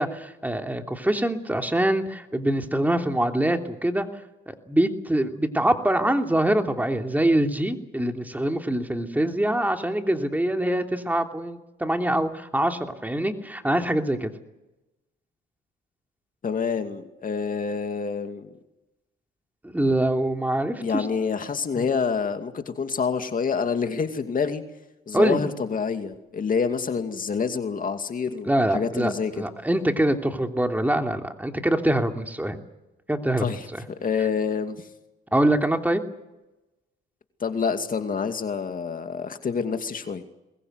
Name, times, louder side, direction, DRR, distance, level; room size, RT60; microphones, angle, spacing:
voice 1, 0.0-4.1 4.5-14.3 19.6-21.1 21.7-21.8 25.1-25.4 28.4-32.6 33.1-33.5 35.3-36.0, right 1 dB, 10° right, 4 dB, 3.0 m, -24 dB
voice 2, 16.4-18.5 20.8-24.6 25.1-29.4 33.4-34.9 37.4-40.2, left 5 dB, 45° left, 7 dB, 2.5 m, -27 dB
23.0 x 21.0 x 8.1 m, 0.97 s
cardioid pair, 90°, 20 cm